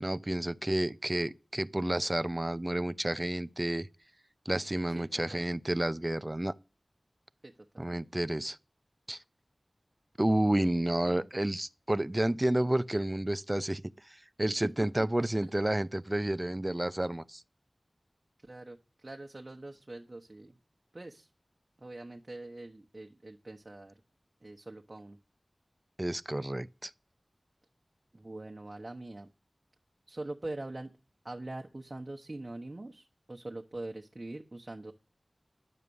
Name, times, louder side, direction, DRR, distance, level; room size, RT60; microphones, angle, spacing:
voice 1, 0.0-3.9 4.5-6.5 7.8-8.6 9.1-9.2 10.2-13.8 14.1-17.4 26.0-26.9, right 1 dB, 25° right, 0.6 m, -30 dB
voice 2, 4.9-5.4 7.4-7.8 10.6-10.7 11.0-11.3 18.4-18.8 19.0-20.5 20.9-21.3 21.8-23.9 24.4-25.2 28.1-29.3 30.1-30.9 31.2-34.9, right 2 dB, 40° right, 1.1 m, -43 dB
11.0 x 7.5 x 7.0 m
wide cardioid pair, 65°, 0 cm